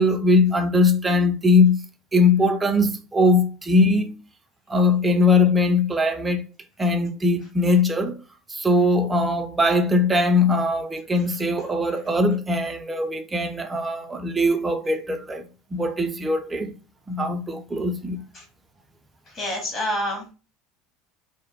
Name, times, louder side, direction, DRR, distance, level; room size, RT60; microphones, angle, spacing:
voice 1, 0.0-1.8 2.1-4.2 4.7-6.4 6.8-8.2 8.5-15.5 15.7-16.7 17.1-18.2, left 2 dB, 15° right, 0.4 m, -20 dB
voice 2, 19.3-20.3, equal, 35° left, 1.4 m, -27 dB
2.7 x 2.1 x 2.6 m
figure-of-eight pair, 70°, 0 cm